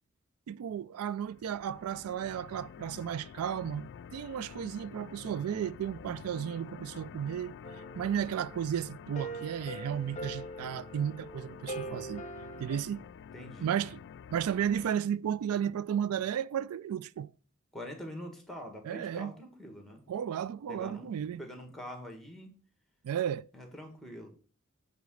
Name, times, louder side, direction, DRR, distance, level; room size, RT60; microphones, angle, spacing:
voice 1, 0.5-7.5 7.9-12.2 12.6-13.1 13.6-14.0 14.3-17.3 18.8-19.4 20.1-21.4 23.0-23.5, right 9 dB, 85° right, 0.3 m, -34 dB
sound 1, 1.2-14.9, left 7 dB, 55° left, 0.3 m, -49 dB
sound 2, 7.6-12.8, right 1 dB, 35° left, 1.0 m, -43 dB
voice 2, 13.3-13.8 17.7-20.0 20.7-21.1 21.4-22.5 23.5-24.3, equal, ahead, 1.6 m, -44 dB
8.3 x 3.8 x 6.3 m
head